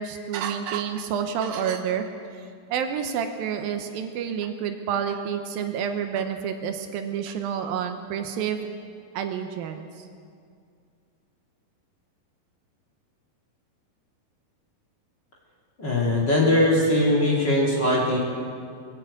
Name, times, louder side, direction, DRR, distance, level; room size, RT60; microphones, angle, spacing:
voice 1, 0.0-2.1 2.7-8.7 9.1-9.9, right 8 dB, 80° right, 6 dB, 2.5 m, -29 dB
voice 2, 15.8-18.2, left 1 dB, 30° left, -4 dB, 2.7 m, -21 dB
22.0 x 7.6 x 8.4 m, 2.3 s
omnidirectional pair, 4.3 m